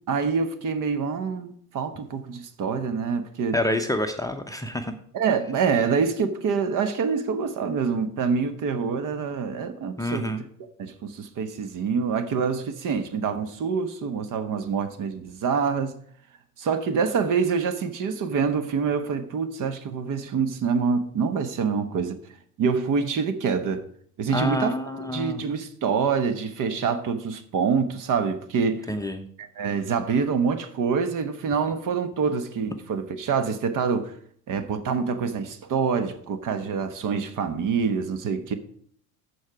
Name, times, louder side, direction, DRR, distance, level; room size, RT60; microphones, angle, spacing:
voice 1, 0.1-3.6 5.1-15.9 16.6-22.2 22.6-23.8 24.2-28.9 29.4-34.1 34.5-38.5, right 5 dB, 45° right, 1.2 m, -26 dB
voice 2, 3.5-4.9 10.0-10.5 24.3-25.4 28.9-29.3, left 1 dB, 10° left, 0.8 m, -28 dB
14.0 x 4.7 x 4.8 m
hypercardioid pair, 80°, 45 cm